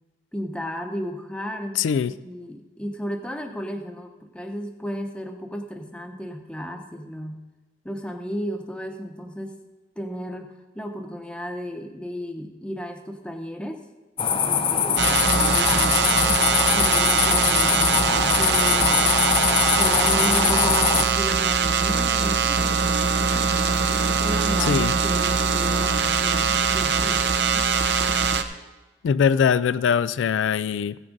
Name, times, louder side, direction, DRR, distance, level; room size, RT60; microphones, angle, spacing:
voice 1, 0.3-7.4 7.8-9.5 10.0-13.8 14.4-16.4 16.7-19.2 19.7-22.8 23.1-23.6 23.9-27.7, equal, 5° left, 4 dB, 0.8 m, -34 dB
voice 2, 1.8-2.1 24.7-24.9 29.0-31.0, left 7 dB, 90° left, 16 dB, 0.3 m, -21 dB
sound 1, 14.2-21.0, left 6 dB, 30° left, 0.5 m, -22 dB
sound 2, 15.0-28.4, right 6 dB, 65° right, 0.7 m, -22 dB
15.5 x 6.2 x 5.2 m, 1.2 s
head